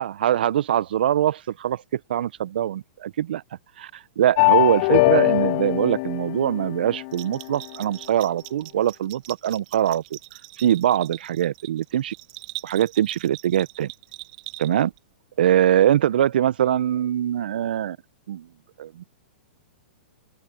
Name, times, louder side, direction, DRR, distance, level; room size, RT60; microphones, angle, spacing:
voice 1, 0.0-3.4 3.8-3.9 4.2-10.2 10.6-12.1 12.6-13.9 14.6-14.9 15.4-18.0 18.3-18.5 18.8-19.0, right 11 dB, 65° right, 1.4 m, -22 dB
sound 1, 4.4-7.3, left 26 dB, 45° left, 0.3 m, -21 dB
Bell, 7.1-15.0, right 24 dB, 50° right, 3.0 m, -41 dB
open air
hypercardioid pair, 110°, 6 cm